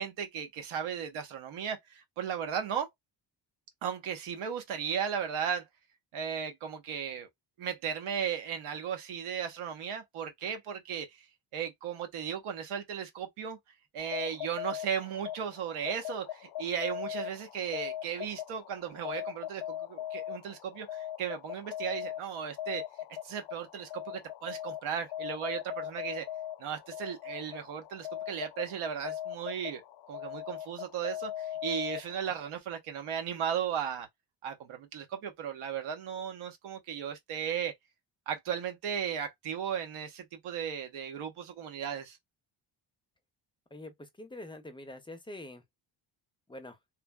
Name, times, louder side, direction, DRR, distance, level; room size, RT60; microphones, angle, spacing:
voice 1, 0.0-2.9 3.8-5.6 6.1-7.3 7.6-11.2 11.5-13.6 13.9-22.8 23.2-26.3 26.6-29.8 30.1-34.1 34.4-37.7 38.3-42.2, right 8 dB, 90° right, 1.0 m, -36 dB
sound 1, 14.0-32.5, left 11 dB, 65° left, 0.6 m, -40 dB
voice 2, 43.7-45.6 46.5-46.8, left 1 dB, 10° left, 0.4 m, -45 dB
3.2 x 2.2 x 2.2 m
cardioid pair, 135°, 48 cm